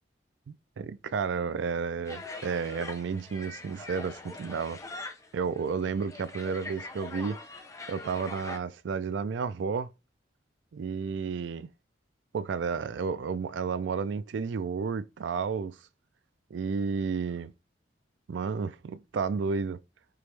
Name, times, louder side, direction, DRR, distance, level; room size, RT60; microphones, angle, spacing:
voice 1, 0.5-4.8 5.3-7.4 7.9-9.9 10.7-11.7 12.3-15.8 16.5-17.5 18.3-19.8, right 5 dB, 85° right, 0.4 m, -32 dB
sound 1, 2.0-8.6, left 3 dB, 15° left, 0.5 m, -43 dB
4.8 x 2.9 x 3.2 m
head